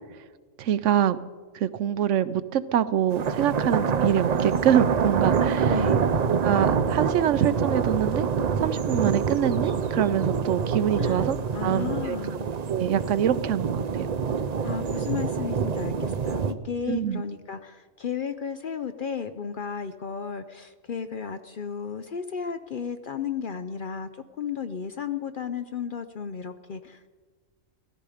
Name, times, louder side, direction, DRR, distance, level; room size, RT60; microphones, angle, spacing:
voice 1, 0.6-1.2 1.5-5.8 6.3-8.3 8.6-11.4 11.6-12.2 12.7-14.1 16.9-17.2, right 10 dB, 70° right, 14 dB, 0.9 m, -25 dB
sound 1, 3.1-16.5, right 6 dB, 50° right, 0.5 m, -26 dB
voice 2, 5.7-6.1 11.0-12.5 14.6-27.1, left 7 dB, 55° left, 9 dB, 0.6 m, -34 dB
17.0 x 13.5 x 5.0 m, 1.4 s
omnidirectional pair, 1.4 m